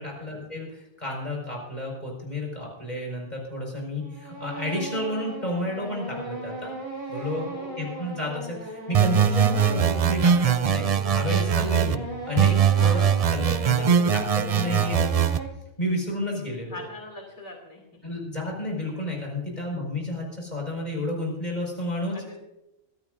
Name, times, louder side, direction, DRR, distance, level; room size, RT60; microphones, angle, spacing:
voice 1, 0.0-6.8 7.1-12.0 12.3-13.0 13.3-15.3 15.8-16.8 18.0-22.1, left 1 dB, 40° left, -1 dB, 5.3 m, -31 dB
sound 1, 4.0-15.5, right 1 dB, 30° right, 3.6 m, -37 dB
voice 2, 7.5-7.9 12.8-13.1 16.7-18.2 22.1-22.4, left 2 dB, 85° left, 1 dB, 2.9 m, -41 dB
sound 2, 8.9-12.0 12.4-15.4, right 8 dB, 50° right, 0.4 m, -21 dB
24.5 x 14.0 x 2.6 m, 0.89 s
omnidirectional pair, 1.2 m